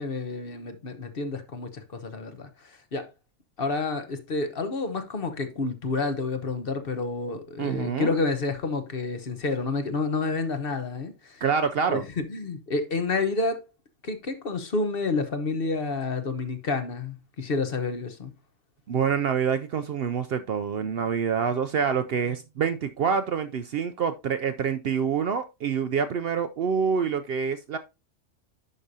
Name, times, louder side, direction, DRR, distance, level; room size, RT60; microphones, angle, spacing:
voice 1, 0.0-3.1 3.6-11.4 11.9-13.6 14.0-18.3, left 3 dB, 50° left, 1.1 m, -29 dB
voice 2, 7.6-8.1 11.4-12.0 18.9-27.8, right 6 dB, 60° right, 0.7 m, -26 dB
10.5 x 5.0 x 2.7 m
omnidirectional pair, 1.3 m